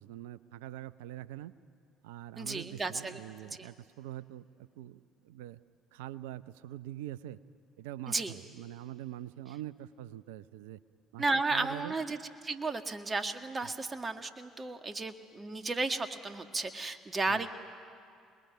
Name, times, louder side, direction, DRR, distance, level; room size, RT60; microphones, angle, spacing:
voice 1, 0.0-1.5 2.0-5.6 5.9-7.4 7.8-10.8 11.1-12.0 13.6-13.7 17.3-17.4, right 13 dB, 75° right, 16 dB, 0.7 m, -44 dB
voice 2, 2.4-3.2 3.5-3.7 8.1-8.3 11.2-12.2 12.4-17.6, right 3 dB, 30° right, 7 dB, 1.9 m, -33 dB
29.5 x 21.0 x 9.3 m, 2.3 s
hypercardioid pair, 55°, 0 cm